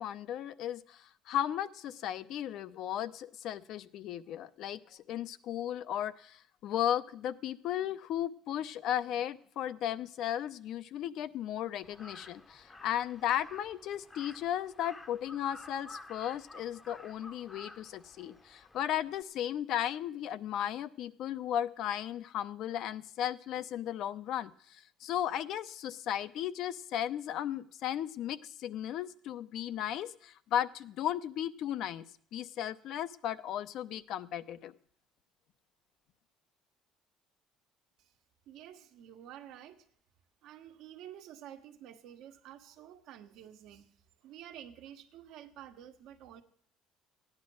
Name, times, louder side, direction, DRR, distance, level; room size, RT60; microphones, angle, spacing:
voice 1, 0.0-32.0 32.3-34.7, left 11 dB, 65° left, 14 dB, 0.6 m, -35 dB
Crow, 11.8-19.2, left 2 dB, 15° left, 0.7 m, -52 dB
voice 2, 38.5-39.9 40.4-43.9 44.2-46.4, right 10 dB, 75° right, 7 dB, 1.3 m, -50 dB
14.5 x 9.8 x 6.3 m, 0.62 s
cardioid pair, 125°, 0 cm